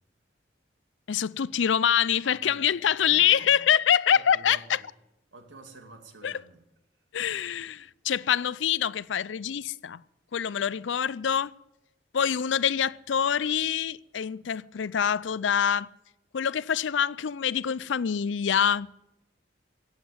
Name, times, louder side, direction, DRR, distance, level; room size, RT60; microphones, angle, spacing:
voice 1, 1.1-4.8 6.2-6.3 7.1-10.0 10.3-11.5 12.1-15.9 16.3-18.9, left 8 dB, 75° left, 0.5 m, -25 dB
voice 2, 2.2-3.7 4.1-4.9 5.3-6.7, right 2 dB, 75° right, 2.4 m, -49 dB
17.0 x 8.2 x 9.5 m
head